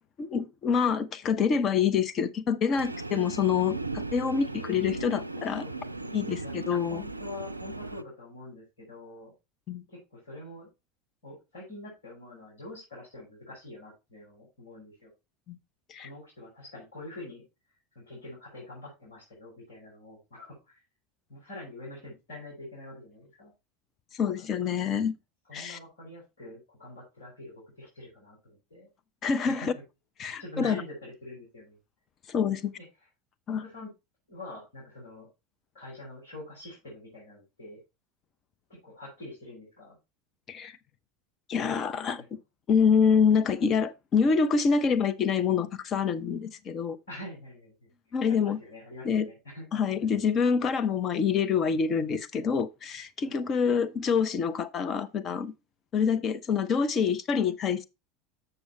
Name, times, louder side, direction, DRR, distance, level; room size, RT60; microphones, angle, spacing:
voice 1, 0.2-5.6 6.1-7.0 9.7-9.8 15.5-15.6 15.9-16.1 24.1-25.1 25.5-25.8 29.2-29.7 30.2-30.8 32.3-32.7 33.5-33.6 40.5-40.7 41.5-42.4 42.7-47.0 48.1-48.6 49.0-49.3 49.7-55.5 55.9-57.8, left 6 dB, 35° left, 0.7 m, -26 dB
Train, 2.8-8.0, right 3 dB, 85° right, 0.3 m, -37 dB
voice 2, 5.6-6.5 6.9-9.3 9.9-10.7 11.2-15.1 16.0-17.4 18.0-20.8 21.3-23.5 24.2-24.3 25.5-28.9 29.4-29.7 30.4-31.8 33.5-33.9 34.3-35.3 35.7-37.8 38.7-40.0 47.1-47.9 48.3-49.8, left 2 dB, 65° left, 5.2 m, -45 dB
7.1 x 6.8 x 4.3 m
figure-of-eight pair, 75°, 0 cm